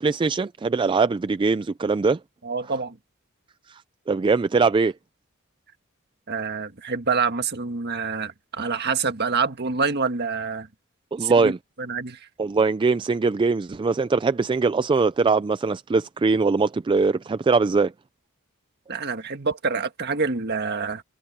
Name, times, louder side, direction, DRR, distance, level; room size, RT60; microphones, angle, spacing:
voice 1, 0.0-2.2 4.1-4.9 11.1-11.6 12.4-17.9, right 4 dB, 25° right, 0.3 m, -21 dB
voice 2, 2.4-3.0 6.3-10.7 11.2-11.5 11.8-12.2 18.9-21.0, right 5 dB, 50° right, 1.6 m, -26 dB
head